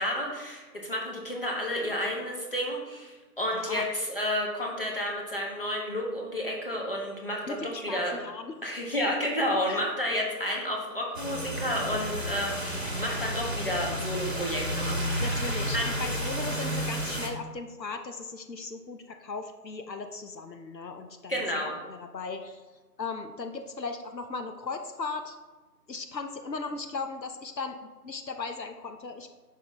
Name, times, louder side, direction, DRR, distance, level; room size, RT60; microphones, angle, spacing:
voice 1, 0.0-8.2 8.6-15.4 15.7-15.8 21.3-21.7, equal, 35° left, -2 dB, 1.2 m, -31 dB
voice 2, 3.5-3.8 7.5-8.5 9.7-9.8 15.2-22.6 23.0-25.4 25.9-29.3, left 4 dB, 85° left, 6 dB, 0.8 m, -37 dB
sound 1, 11.1-17.3, equal, 40° right, 0.9 m, -31 dB
7.5 x 5.8 x 3.2 m, 1.2 s
figure-of-eight pair, 170°, 49 cm